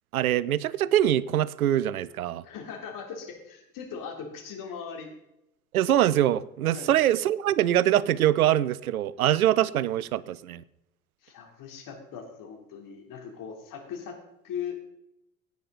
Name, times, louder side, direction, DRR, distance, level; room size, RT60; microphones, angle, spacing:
voice 1, 0.1-2.4 5.7-10.6, right 12 dB, 80° right, 20 dB, 0.6 m, -23 dB
voice 2, 2.4-5.1 6.7-6.9 11.2-14.2 14.4-14.7, left 7 dB, 50° left, 2 dB, 3.5 m, -39 dB
17.5 x 9.3 x 4.0 m, 0.84 s
figure-of-eight pair, 70°, 43 cm